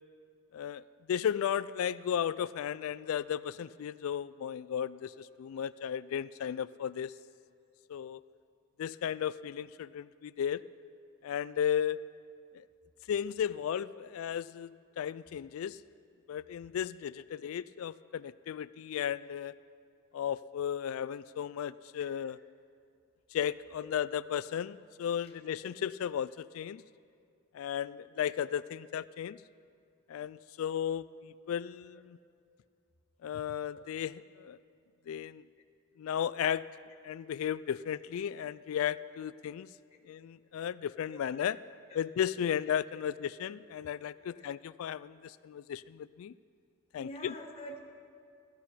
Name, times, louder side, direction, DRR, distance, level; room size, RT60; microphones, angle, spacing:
voice 1, 0.5-7.1 7.9-8.2 8.8-10.6 11.2-12.0 12.5-12.6 13.1-15.8 16.3-19.5 20.1-22.4 23.3-26.8 27.5-29.4 30.1-32.2 33.2-34.6 35.1-35.4 36.0-36.7 37.0-39.7 40.1-41.6 41.9-46.3 46.9-47.3, left 9 dB, 85° left, 16 dB, 0.3 m, -35 dB
voice 2, 4.9-5.6 22.1-22.2 23.8-23.9 25.2-25.7 33.7-33.9 39.9-40.0 41.0-41.2 41.5-41.6 41.9-42.0 42.9-43.0 43.9-44.4 47.0-47.8, equal, 30° left, -3 dB, 1.4 m, -49 dB
16.0 x 13.0 x 5.6 m, 2.3 s
head